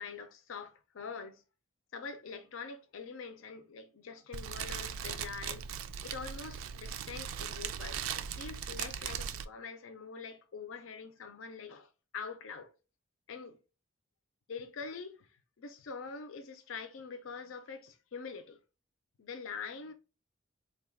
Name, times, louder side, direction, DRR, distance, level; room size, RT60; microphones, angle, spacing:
voice 1, 0.0-1.4 1.9-5.7 6.0-12.7 13.3-13.6 14.5-15.3 15.6-18.6 19.2-19.9, left 5 dB, 80° left, 0.5 m, -44 dB
Fire, 4.3-9.4, right 8 dB, 90° right, 0.3 m, -39 dB
3.7 x 2.3 x 3.4 m
head